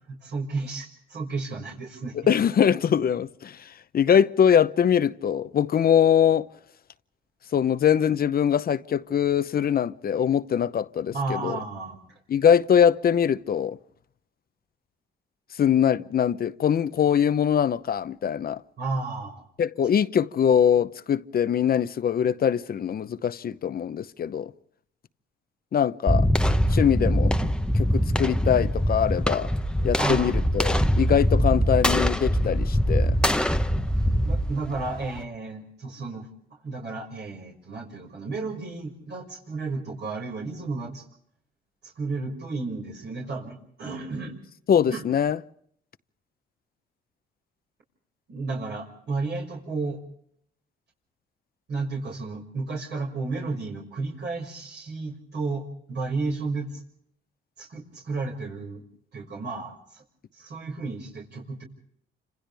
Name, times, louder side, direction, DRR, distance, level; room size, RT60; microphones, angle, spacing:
voice 1, 0.1-2.1 11.1-12.2 18.8-19.4 30.0-30.3 34.2-36.3 36.6-41.0 41.8-44.3 44.9-45.0 48.3-50.0 51.7-56.8 57.6-58.8 59.1-60.0 60.3-61.6, right 3 dB, 60° right, 5.9 m, -32 dB
voice 2, 2.2-3.7 3.9-6.5 7.5-11.6 12.3-13.8 15.6-18.6 19.6-24.5 25.7-26.3 26.7-27.3 27.7-29.5 29.8-33.2 44.7-45.4, left 8 dB, 50° left, 0.8 m, -22 dB
sound 1, 26.1-35.2, equal, 5° left, 1.0 m, -23 dB
29.5 x 26.5 x 3.5 m
cardioid pair, 90°, 20 cm